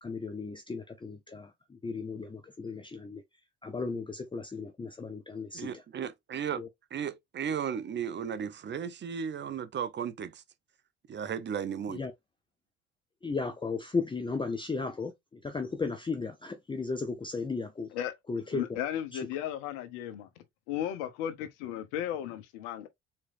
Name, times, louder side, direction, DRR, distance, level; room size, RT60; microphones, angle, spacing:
voice 1, 0.0-3.2 3.6-5.8 6.6-6.7 11.9-12.1 13.2-17.9 18.3-18.8 19.1-19.3, left 4 dB, 15° left, 0.6 m, -35 dB
voice 2, 5.5-6.6 6.9-10.4 11.1-12.0, right 7 dB, 35° right, 0.7 m, -35 dB
voice 3, 18.5-20.3 20.7-22.9, left 10 dB, 70° left, 1.0 m, -35 dB
4.3 x 3.0 x 2.5 m
hypercardioid pair, 60°, 32 cm